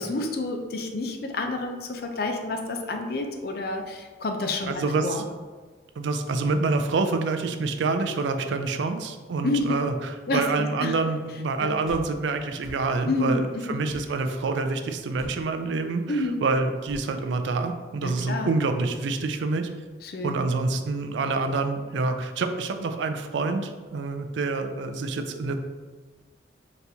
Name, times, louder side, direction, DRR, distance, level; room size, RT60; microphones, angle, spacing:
voice 1, 0.0-5.2 9.4-9.8 10.3-10.9 11.6-11.7 13.1-13.8 16.1-16.5 18.0-18.5 20.0-20.4, left 2 dB, 55° left, 4 dB, 0.5 m, -29 dB
voice 2, 4.7-5.2 6.0-19.7 20.2-25.6, right 3 dB, 80° right, 7 dB, 0.4 m, -27 dB
sound 1, 11.8-12.1 12.6-12.8 13.9-14.1 15.1-15.4 16.9-17.1, equal, ahead, 0.8 m, -43 dB
4.0 x 2.9 x 3.4 m, 1.4 s
head